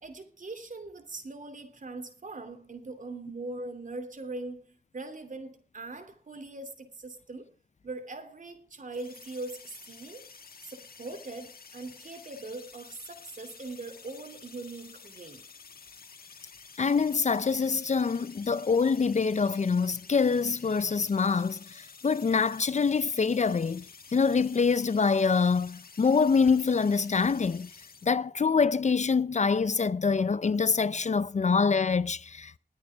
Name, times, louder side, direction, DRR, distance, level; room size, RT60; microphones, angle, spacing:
voice 1, 0.0-7.5 7.8-10.3 10.6-15.4, right 2 dB, 55° right, 2.9 m, -41 dB
sound 1, 8.9-28.1, left 5 dB, 75° left, 1.4 m, -51 dB
voice 2, 16.8-23.9 24.1-27.7 28.0-32.5, left 5 dB, 50° left, 0.5 m, -25 dB
21.0 x 8.7 x 3.5 m
wide cardioid pair, 95°, 16 cm